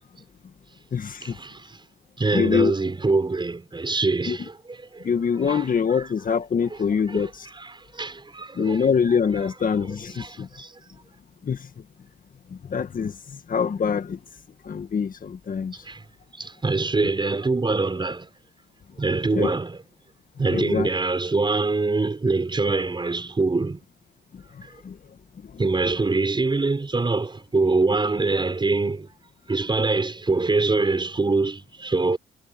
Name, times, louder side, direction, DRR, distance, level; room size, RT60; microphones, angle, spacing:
voice 1, 1.2-1.8 2.2-6.1 6.7-10.7 15.7-16.0 16.4-18.3 19.0-19.8 20.4-23.8 25.6-29.1 29.5-32.2, right 3 dB, 25° right, 6.0 m, -25 dB
voice 2, 2.3-2.7 4.3-4.4 5.1-7.3 8.6-10.5 11.5-11.6 12.7-13.1 13.5-14.2 14.7-15.7 17.0-17.1 19.3-19.5 20.5-20.9 24.9-25.0, left 6 dB, 45° left, 1.9 m, -24 dB
cardioid pair, 90°, 20 cm